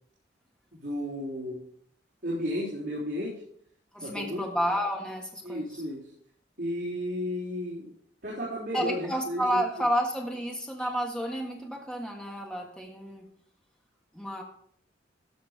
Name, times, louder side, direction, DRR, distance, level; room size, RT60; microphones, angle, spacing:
voice 1, 0.7-1.6 2.2-3.3 4.0-4.4 5.4-6.0 6.6-7.9 8.2-9.6, equal, 65° right, -7 dB, 3.3 m, -33 dB
voice 2, 3.9-5.8 8.7-13.2 14.1-14.4, equal, 5° left, 0 dB, 1.5 m, -31 dB
14.0 x 6.4 x 4.9 m, 0.64 s
head